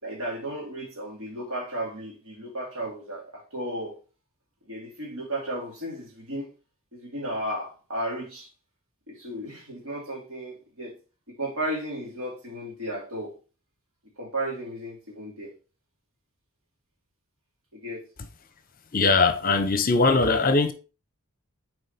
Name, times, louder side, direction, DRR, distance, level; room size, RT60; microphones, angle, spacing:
voice 1, 0.0-3.9 4.7-6.5 6.9-8.5 9.1-10.9 11.3-13.3 14.2-15.5 17.7-18.0, right 1 dB, 70° right, 2.8 m, -34 dB
voice 2, 18.9-20.7, left 3 dB, 40° left, 0.8 m, -21 dB
7.0 x 4.8 x 4.2 m
head